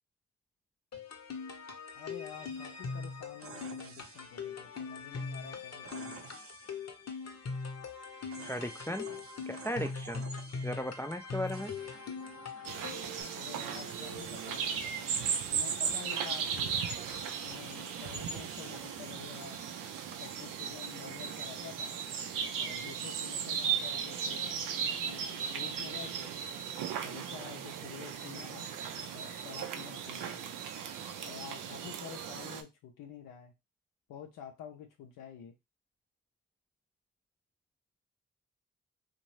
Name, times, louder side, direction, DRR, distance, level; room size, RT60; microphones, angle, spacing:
sound 1, 0.9-13.2, left 4 dB, 55° left, 0.8 m, -41 dB
voice 1, 1.9-6.2 13.3-15.0 15.5-16.8 17.4-19.6 20.2-22.0 22.6-26.3 27.0-28.7 29.1-30.6 31.2-33.5 34.1-35.5, left 8 dB, 90° left, 2 dB, 0.5 m, -49 dB
sound 2, 2.3-21.5, right 3 dB, 45° right, 0.7 m, -51 dB
voice 2, 8.5-9.1 9.5-10.2 10.6-11.7, equal, 10° left, 6 dB, 0.4 m, -36 dB
sound 3, 12.6-32.6, right 7 dB, 85° right, 0.5 m, -37 dB
2.6 x 2.2 x 3.1 m, 0.22 s
supercardioid pair, 40°, 32 cm